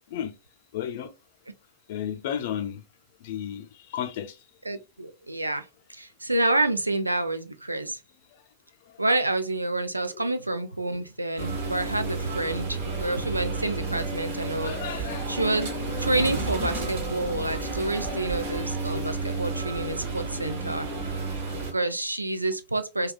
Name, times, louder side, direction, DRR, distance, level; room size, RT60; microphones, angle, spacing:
voice 1, 0.7-1.1 1.9-2.8 3.2-3.7 3.9-4.4 14.6-15.3, left 9 dB, 55° left, 0.5 m, -32 dB
voice 2, 4.7-8.0 9.0-15.7 16.0-20.9 21.6-23.1, right 2 dB, 85° right, 0.4 m, -28 dB
sound 1, 11.4-21.7, right 3 dB, 60° right, 1.3 m, -31 dB
3.4 x 2.2 x 2.3 m
figure-of-eight pair, 90°, 0 cm